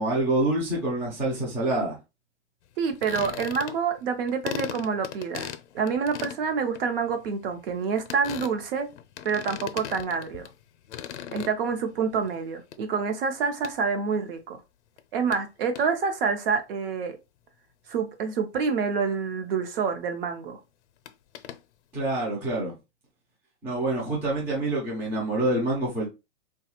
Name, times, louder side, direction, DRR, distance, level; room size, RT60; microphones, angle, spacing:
voice 1, 0.0-2.0 21.9-22.7 23.6-26.1, right 2 dB, 5° right, 0.4 m, -26 dB
voice 2, 2.8-8.9 9.2-10.5 11.3-14.6 15.1-17.2 17.9-20.6, right 5 dB, 50° right, 0.8 m, -27 dB
sound 1, 2.9-4.0 4.3-10.6 10.9-11.9 12.2-12.8 13.6-13.7 15.0-15.1 15.3-15.4 15.7-15.8 21.0-21.6, left 10 dB, 70° left, 0.5 m, -38 dB
3.1 x 2.3 x 2.9 m
hypercardioid pair, 150°, 36 cm